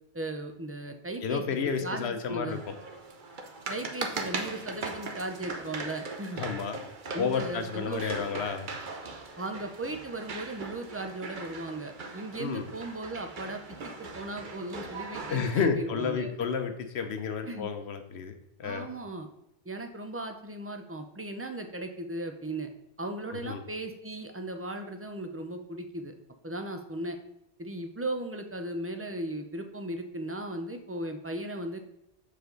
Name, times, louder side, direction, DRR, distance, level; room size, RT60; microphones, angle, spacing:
voice 1, 0.1-1.4 1.8-2.6 3.7-6.4 7.1-8.2 9.4-16.4 17.4-17.7 18.6-19.3 19.6-22.7 23.0-26.1 26.4-27.2 27.6-31.8, right 1 dB, 20° right, 5 dB, 0.4 m, -37 dB
voice 2, 1.2-2.8 6.3-6.8 7.2-8.7 12.4-12.7 15.3-18.3 18.6-18.9 23.3-23.6, left 6 dB, 75° left, 7 dB, 1.0 m, -31 dB
sound 1, 2.5-15.6, right 3 dB, 50° right, 0.9 m, -40 dB
6.8 x 5.0 x 3.9 m, 0.84 s
omnidirectional pair, 1.1 m